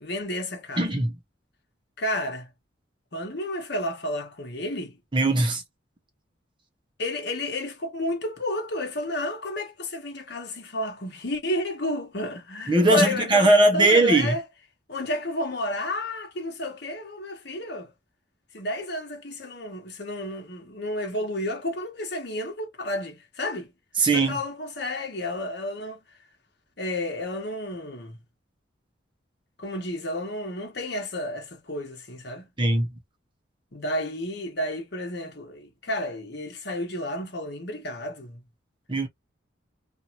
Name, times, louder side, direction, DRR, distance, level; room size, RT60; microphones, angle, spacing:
voice 1, 0.0-0.9 2.0-2.5 3.1-5.0 7.0-14.4 14.9-17.9 18.5-23.7 24.1-26.0 26.8-28.2 29.6-32.5 33.7-38.4, left 1 dB, 60° left, 1.2 m, -31 dB
voice 2, 0.8-1.1 5.1-5.6 12.7-14.4 24.0-24.4 32.6-32.9 38.9-39.1, right 2 dB, 25° right, 0.8 m, -20 dB
2.6 x 2.6 x 2.9 m
head